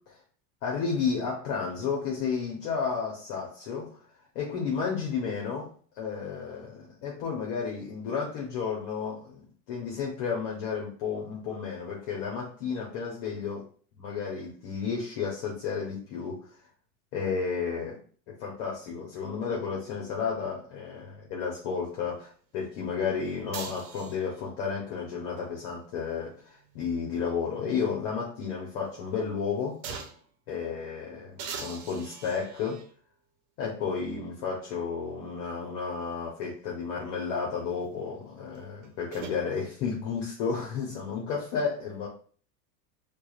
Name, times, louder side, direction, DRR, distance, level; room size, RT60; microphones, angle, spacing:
voice 1, 0.6-4.0 4.3-5.7 6.0-13.6 14.0-16.4 17.1-18.0 18.4-29.8 30.5-32.8 33.6-42.1, left 6 dB, 55° left, -2 dB, 1.2 m, -32 dB
sound 1, 23.5-24.5 26.2-27.8 28.2-28.3 29.8-30.3 31.4-32.9 33.9-34.0 38.5-39.4, right 5 dB, 65° right, 1.0 m, -42 dB
4.5 x 2.5 x 2.5 m, 0.44 s
supercardioid pair, 115°, 47 cm